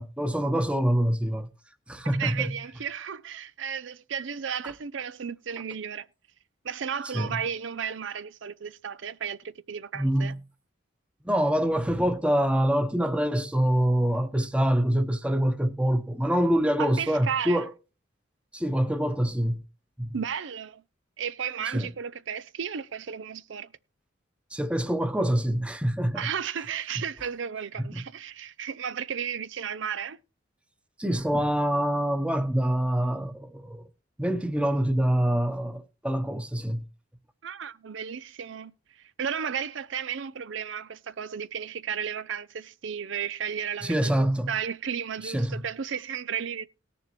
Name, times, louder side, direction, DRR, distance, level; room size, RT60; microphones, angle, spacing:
voice 1, 0.0-1.5 1.9-2.5 7.1-7.3 9.9-10.3 11.2-17.7 18.5-19.6 20.0-20.1 21.7-21.9 24.5-26.2 27.8-28.0 31.0-33.8 34.2-36.8 43.8-44.5 45.2-45.6, equal, 5° right, 1.0 m, -25 dB
voice 2, 2.1-6.1 6.6-10.3 16.8-17.7 20.1-20.8 21.2-23.7 26.1-30.2 37.4-46.6, right 7 dB, 70° right, 0.5 m, -34 dB
19.0 x 6.9 x 3.1 m
head